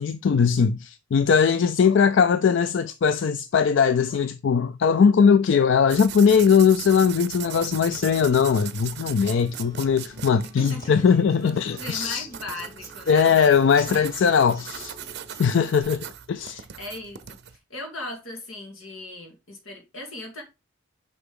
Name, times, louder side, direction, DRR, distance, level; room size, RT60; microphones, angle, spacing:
voice 1, 0.0-12.3 13.1-14.9 15.4-16.6, left 6 dB, 60° left, 0.4 m, -20 dB
sound 1, 5.9-17.6, right 10 dB, 55° right, 0.6 m, -39 dB
Acoustic guitar, 7.8-15.8, equal, 20° left, 3.1 m, -48 dB
voice 2, 10.5-10.9 11.4-14.0 15.4-15.7 16.5-20.4, left 1 dB, 85° left, 2.1 m, -38 dB
6.8 x 5.1 x 3.7 m
head